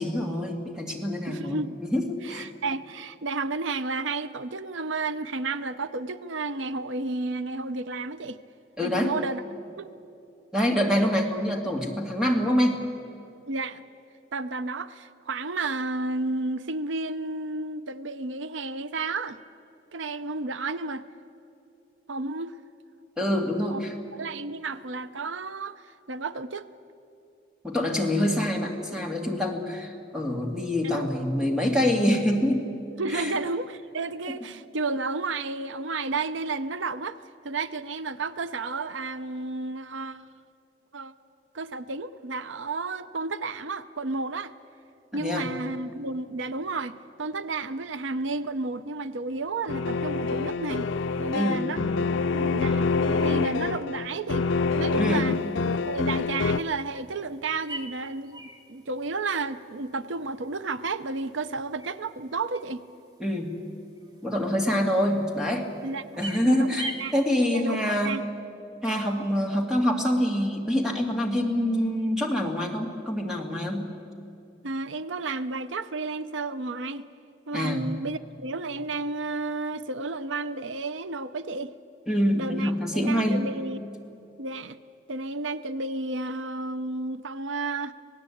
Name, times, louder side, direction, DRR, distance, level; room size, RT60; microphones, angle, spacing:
voice 1, 0.0-2.5 8.8-9.1 10.5-12.8 23.2-23.9 27.6-32.7 33.1-33.4 45.1-45.5 51.3-51.6 55.0-55.3 63.2-63.6 64.2-65.7 66.2-68.3 68.8-73.9 77.5-77.8 82.1-83.5, equal, 5° right, 1 dB, 2.3 m, -26 dB
voice 2, 1.3-1.8 2.2-8.4 8.8-9.4 9.8-9.9 13.5-13.8 14.3-19.4 19.9-21.1 22.1-22.6 23.7-23.8 24.1-26.7 30.9-31.1 33.0-37.2 37.4-40.4 40.9-41.1 41.5-44.5 45.1-50.9 51.2-51.8 52.3-54.5 54.7-55.3 55.9-62.8 65.8-67.1 67.5-68.2 74.6-77.1 77.5-81.7 82.3-83.8 84.4-84.8 85.1-87.9, right 3 dB, 80° right, 13 dB, 0.7 m, -32 dB
sound 1, 49.7-56.6, left 4 dB, 85° left, 0.6 m, -26 dB
sound 2, 55.1-67.3, right 1 dB, 20° right, 1.8 m, -45 dB
26.5 x 18.0 x 8.6 m, 2.7 s
head